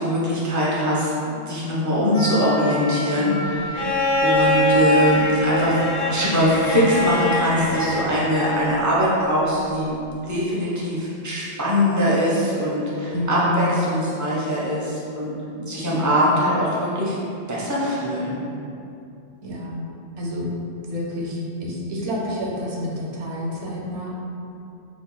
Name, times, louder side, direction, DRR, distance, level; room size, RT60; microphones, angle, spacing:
voice 1, 0.0-3.7 4.2-10.0 10.3-15.3 15.7-17.2 17.5-18.4, equal, 25° right, -7 dB, 0.4 m, -22 dB
Wind instrument woodwind instrument, 2.1-6.9, equal, 90° left, 1.2 m, -32 dB
Bowed string instrument, 3.7-8.8 10.2-10.3, equal, 55° left, 0.7 m, -23 dB
voice 2, 13.1-13.7 15.9-16.4 19.4-19.9 20.2-20.5 20.8-24.3, left 1 dB, 75° right, -3 dB, 0.9 m, -29 dB
2.9 x 2.4 x 3.8 m, 2.6 s
omnidirectional pair, 1.2 m